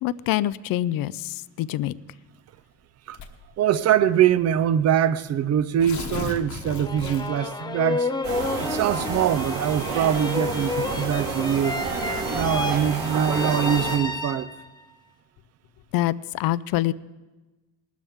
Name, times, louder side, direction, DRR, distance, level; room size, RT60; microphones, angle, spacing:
voice 1, 0.0-2.0 15.9-16.9, left 14 dB, 75° left, 0.5 m, -25 dB
Tearing, 3.1-3.5 4.4-4.5 4.8-4.9 5.6-7.5, left 5 dB, 55° left, 1.2 m, -35 dB
voice 2, 3.6-8.1 8.6-11.7 12.3-14.5, right 9 dB, 45° right, 0.6 m, -23 dB
sound 1, 6.6-14.8, left 3 dB, 10° left, 0.6 m, -31 dB
sound 2, 8.2-14.0, right 4 dB, 65° right, 2.4 m, -30 dB
19.5 x 12.5 x 3.6 m
cardioid pair, 130°, 35 cm